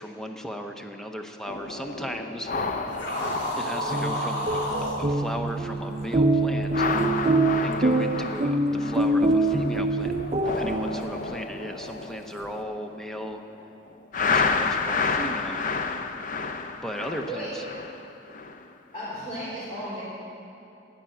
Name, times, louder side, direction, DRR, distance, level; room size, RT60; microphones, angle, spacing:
voice 1, 0.0-2.5 3.6-4.7 5.0-7.3 7.6-10.1 10.5-13.4 14.2-15.7 16.8-17.5, equal, 5° left, 4 dB, 0.7 m, -36 dB
sound 1, 1.5-5.6 5.9-6.2 6.6-9.8 10.2-13.4 14.1-18.6 19.0-19.3, left 4 dB, 40° left, 0.6 m, -31 dB
sound 2, 2.9-5.0, equal, 65° left, 2.8 m, -30 dB
sound 3, 3.8-11.4, right 2 dB, 30° right, 0.5 m, -25 dB
voice 2, 18.9-20.0, equal, 25° left, -11 dB, 3.7 m, -36 dB
17.0 x 6.1 x 10.0 m, 2.7 s
head